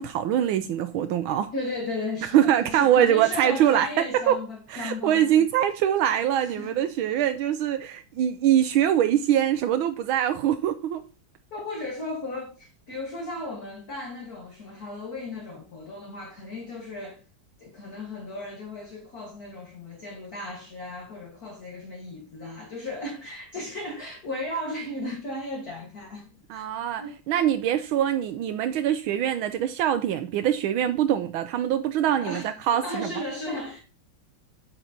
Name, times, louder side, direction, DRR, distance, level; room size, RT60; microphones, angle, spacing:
voice 1, 0.0-1.5 2.3-4.4 4.7-11.0 26.5-33.1, right 10 dB, 80° right, 1.5 m, -23 dB
voice 2, 1.5-5.5 6.4-6.7 11.5-17.2 17.6-26.6 27.0-27.2 32.2-33.8, left 2 dB, 45° left, 2.0 m, -35 dB
10.0 x 8.1 x 2.9 m
omnidirectional pair, 2.3 m